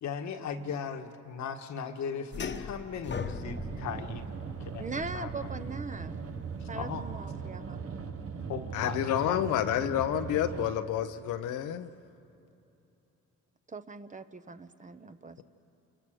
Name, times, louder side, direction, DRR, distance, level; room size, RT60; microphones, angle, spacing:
voice 1, 0.0-4.2 4.6-5.5 6.6-7.1 8.5-9.4, left 6 dB, 70° left, 6 dB, 1.4 m, -37 dB
sound 1, 2.3-7.3, left 5 dB, 35° left, 1.1 m, -40 dB
sound 2, 3.4-10.7, right 6 dB, 50° right, 1.2 m, -39 dB
voice 2, 4.8-6.2 6.7-7.8 13.7-15.4, right 4 dB, 25° right, 10 dB, 0.9 m, -40 dB
voice 3, 8.7-11.9, left 10 dB, 85° left, 8 dB, 0.8 m, -29 dB
28.5 x 21.0 x 6.3 m, 2.8 s
cardioid pair, 90°, 30 cm